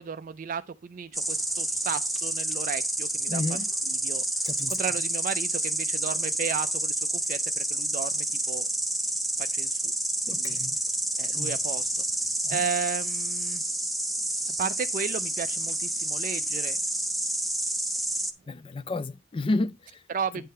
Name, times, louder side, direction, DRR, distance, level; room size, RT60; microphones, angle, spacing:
voice 1, 0.0-3.6 3.9-4.2 4.7-8.7 9.4-9.9 10.3-10.6 11.2-12.0 12.5-13.6 14.6-16.8 20.1-20.5, right 6 dB, 45° right, 0.4 m, -34 dB
Insect, 1.1-18.3, right 1 dB, ahead, 0.7 m, -29 dB
voice 2, 3.3-3.7 4.5-4.8 10.3-10.8 11.4-11.6 12.4-12.6 18.5-20.0, left 2 dB, 25° left, 0.4 m, -31 dB
9.4 x 3.7 x 5.4 m
head